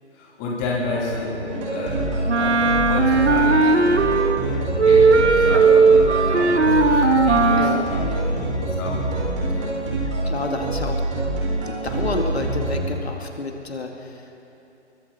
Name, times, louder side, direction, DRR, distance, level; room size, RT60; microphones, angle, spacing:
voice 1, 0.1-1.4 1.7-2.1 2.4-4.4 4.8-9.9, left 3 dB, 15° left, -4 dB, 3.1 m, -31 dB
sound 1, 0.8-8.7, left 3 dB, 35° left, 2.7 m, -38 dB
sound 2, 1.5-12.8, right 2 dB, 25° right, 4.2 m, -26 dB
Wind instrument woodwind instrument, 2.3-4.5 4.8-7.9, right 4 dB, 75° right, 1.4 m, -17 dB
voice 2, 7.6-7.9 10.2-11.0 11.6-14.5, left 3 dB, 65° left, 2 dB, 2.3 m, -30 dB
27.5 x 23.0 x 4.3 m, 2.9 s
figure-of-eight pair, 155°, 35 cm